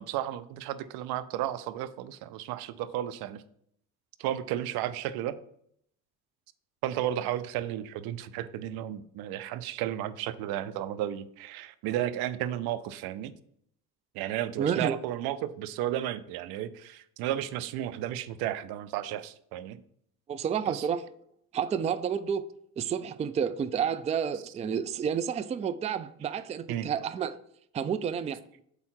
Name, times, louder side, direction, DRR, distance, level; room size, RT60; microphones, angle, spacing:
voice 1, 0.0-3.4 4.2-5.4 6.8-13.3 14.1-19.8 20.7-20.8 26.7-26.9, right 12 dB, 85° right, 0.6 m, -33 dB
voice 2, 14.6-14.9 20.3-21.0 21.5-22.4 22.8-27.4 27.7-28.4, right 7 dB, 20° right, 0.3 m, -30 dB
6.9 x 4.8 x 4.4 m
cardioid pair, 100°, 37 cm